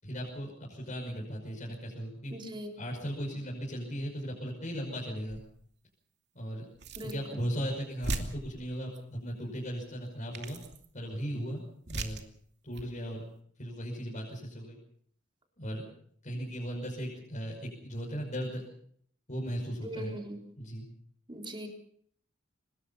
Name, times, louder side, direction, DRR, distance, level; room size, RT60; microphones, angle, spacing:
voice 1, 0.0-2.3 2.8-5.4 6.3-6.7 7.0-10.6 10.9-12.2 12.6-13.2 13.6-14.8 15.6-15.8 16.2-18.6 19.3-20.2 20.6-20.8, equal, 40° left, -3 dB, 5.7 m, -37 dB
voice 2, 2.3-2.7 7.0-7.2 19.8-20.4 21.3-21.7, right 1 dB, 25° right, 2 dB, 4.0 m, -40 dB
sound 1, 5.3-5.6 6.7-7.3 7.6-7.7 8.0-9.0 9.9-10.0 10.3-10.9 11.8-12.3 12.7-12.9, right 2 dB, 60° right, 2.6 m, -38 dB
24.5 x 20.5 x 5.7 m, 0.62 s
head